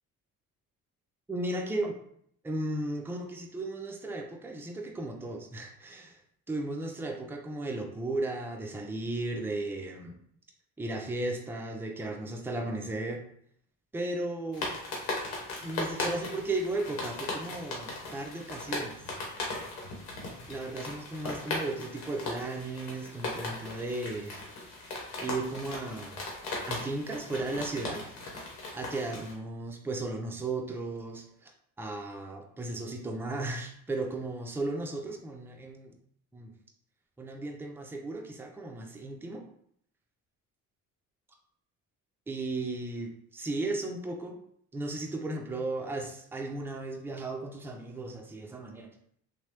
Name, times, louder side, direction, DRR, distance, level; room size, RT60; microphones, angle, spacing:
voice 1, 1.3-2.0 2.4-6.2 6.5-10.1 10.8-13.2 13.9-14.7 15.6-19.0 20.5-24.5 25.2-26.2 26.7-28.0 28.7-31.5 31.8-35.9 36.3-36.5 37.2-39.4 42.3-44.4 44.7-48.9, right 2 dB, 5° right, 2 dB, 0.5 m, -35 dB
sound 1, 14.5-29.3, left 2 dB, 75° left, 1.0 m, -38 dB
2.9 x 2.2 x 2.9 m, 0.67 s
supercardioid pair, 60°, 40 cm